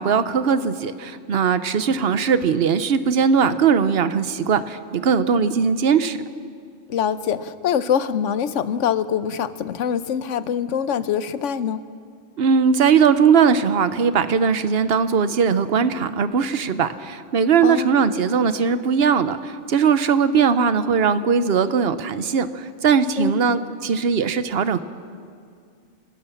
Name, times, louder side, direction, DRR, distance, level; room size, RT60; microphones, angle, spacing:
voice 1, 0.0-6.2 12.4-24.8, right 6 dB, 55° right, 13 dB, 1.0 m, -19 dB
voice 2, 6.9-11.9 17.6-18.0 23.2-23.3, left 8 dB, 80° left, 14 dB, 1.1 m, -24 dB
30.0 x 12.5 x 7.2 m, 2.2 s
omnidirectional pair, 1.3 m